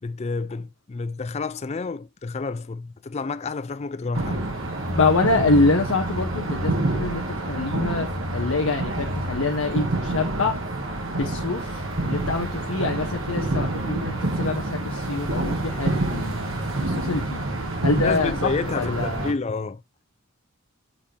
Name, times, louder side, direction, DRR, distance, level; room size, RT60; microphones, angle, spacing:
voice 1, 0.0-4.4 7.9-8.0 18.0-19.8, left 4 dB, 30° left, 0.4 m, -29 dB
sound 1, 4.1-19.3, right 2 dB, 65° right, 1.6 m, -27 dB
voice 2, 4.9-8.1 8.3-10.6 11.2-11.6 12.0-16.4 16.8-17.4 17.8-18.3 18.7-19.3, left 3 dB, 75° left, 0.9 m, -25 dB
7.4 x 5.0 x 2.9 m
head